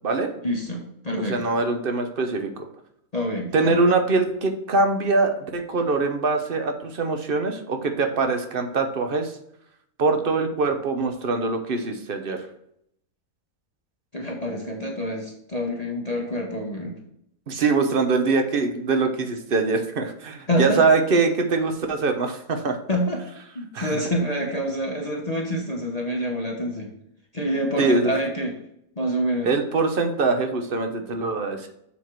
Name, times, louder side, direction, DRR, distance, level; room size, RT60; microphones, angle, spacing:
voice 1, 0.4-1.4 3.1-3.9 14.1-16.9 20.5-20.8 22.9-23.2 23.5-26.9 27.3-28.5 29.0-29.5, equal, 30° left, 0 dB, 1.0 m, -27 dB
voice 2, 1.2-2.7 3.5-9.4 10.0-12.5 17.5-22.8 23.7-24.0 27.8-28.1 29.4-31.7, right 3 dB, 45° right, 6 dB, 0.9 m, -23 dB
7.2 x 4.5 x 4.7 m, 0.75 s
omnidirectional pair, 1.6 m